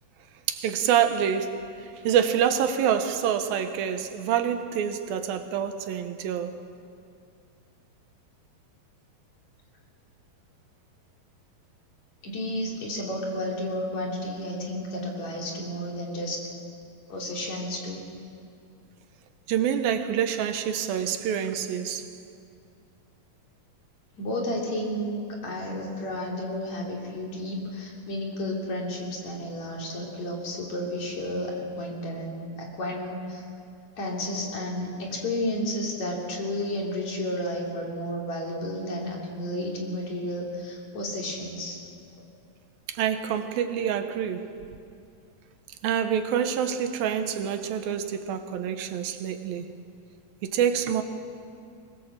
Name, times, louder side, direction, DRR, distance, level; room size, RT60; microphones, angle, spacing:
voice 1, 0.5-6.6 19.5-22.1 42.9-44.5 45.8-49.7 50.4-51.0, right 8 dB, 75° right, 8 dB, 2.7 m, -26 dB
voice 2, 12.2-16.4 17.1-18.0 24.2-33.4 34.0-41.8, left 1 dB, 50° left, -2 dB, 4.3 m, -32 dB
23.0 x 20.5 x 7.4 m, 2.4 s
omnidirectional pair, 4.3 m